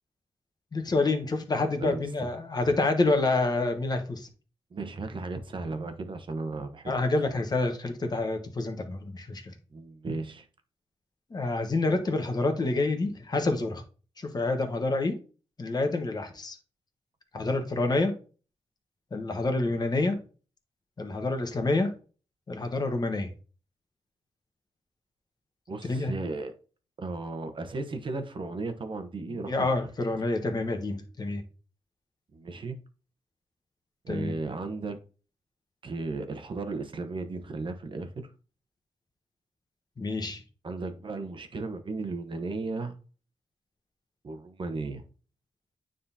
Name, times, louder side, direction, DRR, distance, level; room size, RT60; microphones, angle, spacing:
voice 1, 0.7-4.3 6.9-9.5 11.3-13.8 14.2-15.2 15.6-16.6 17.3-18.1 19.1-20.2 21.0-21.9 22.5-23.3 25.8-26.1 29.5-31.4 34.1-34.3 40.0-40.4, left 2 dB, 35° left, 1.2 m, -27 dB
voice 2, 1.8-2.3 4.7-7.0 9.7-10.5 25.7-26.5 27.0-29.9 32.3-32.8 34.0-35.0 35.8-38.3 40.6-43.0 44.2-45.0, right 3 dB, 45° right, 0.9 m, -35 dB
9.4 x 3.8 x 2.8 m
cardioid pair, 95°, 12 cm